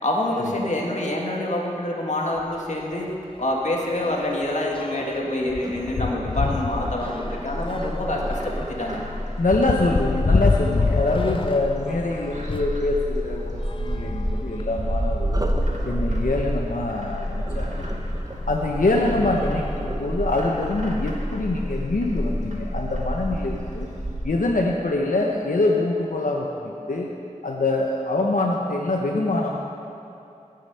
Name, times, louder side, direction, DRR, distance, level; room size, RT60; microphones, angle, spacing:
voice 1, 0.0-3.1 3.4-9.0, left 1 dB, 60° left, -2 dB, 1.9 m, -26 dB
sound 1, 2.4-2.6 2.9-3.1 3.4-12.8 13.6-14.9 15.6-15.7 15.9-16.0 17.7-17.8 18.5-18.8 19.1-20.4, left 3 dB, 40° left, 0.4 m, -28 dB
Sink (filling or washing), 4.8-10.8 15.2-22.2 22.7-23.1 23.5-23.6, right 1 dB, 25° right, 1.0 m, -39 dB
Bird, 6.5-24.2, equal, 60° right, 1.8 m, -29 dB
voice 2, 9.4-15.5 15.8-18.1 18.5-23.9 24.2-27.1 27.4-29.6, left 2 dB, 85° left, -1 dB, 0.9 m, -24 dB
17.5 x 6.7 x 5.7 m, 2.7 s
wide cardioid pair, 60°, 14 cm